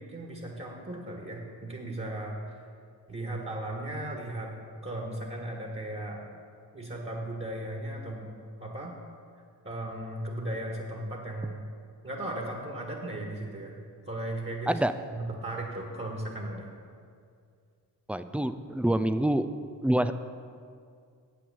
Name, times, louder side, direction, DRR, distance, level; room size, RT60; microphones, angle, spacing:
voice 1, 0.0-2.4 3.1-4.5 4.8-6.2 6.7-8.3 8.6-8.9 9.6-11.6 12.0-13.8 14.1-14.8 15.1-16.7, right 1 dB, 25° right, 0 dB, 1.8 m, -36 dB
voice 2, 18.1-19.5 19.8-20.1, right 1 dB, 5° right, 11 dB, 0.3 m, -26 dB
8.0 x 6.0 x 7.1 m, 2.2 s
supercardioid pair, 50°, 44 cm